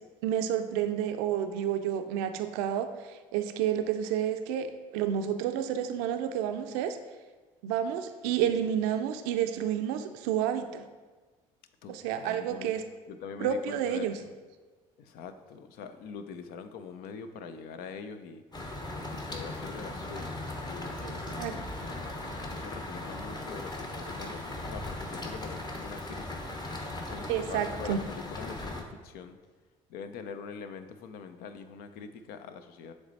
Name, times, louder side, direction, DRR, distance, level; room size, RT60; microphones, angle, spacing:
voice 1, 0.2-7.0 7.6-10.8 11.9-12.8 13.4-14.1 21.0-21.6 27.3-28.0, right 9 dB, 80° right, 8 dB, 0.4 m, -30 dB
voice 2, 11.8-12.7 13.1-14.3 15.0-18.4 19.1-21.9 22.5-26.5 27.1-29.4 29.9-32.9, left 6 dB, 70° left, 9 dB, 0.5 m, -44 dB
sound 1, 18.5-28.8, left 2 dB, 25° left, 1.0 m, -38 dB
7.2 x 3.2 x 4.0 m, 1.3 s
hypercardioid pair, 65°, 16 cm